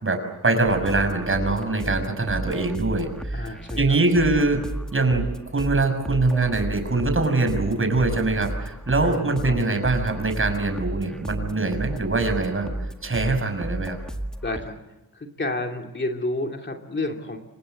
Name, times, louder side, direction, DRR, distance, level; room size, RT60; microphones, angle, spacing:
voice 1, 0.0-4.6 4.9-12.7 13.0-14.0, right 3 dB, 40° right, 6 dB, 6.0 m, -23 dB
sound 1, 0.6-14.6, right 1 dB, ahead, 1.9 m, -33 dB
voice 2, 3.3-4.0 9.0-9.6 14.4-14.8 15.1-17.4, left 2 dB, 30° left, 3 dB, 2.7 m, -30 dB
29.5 x 25.0 x 8.0 m, 0.98 s
wide cardioid pair, 135°, 34 cm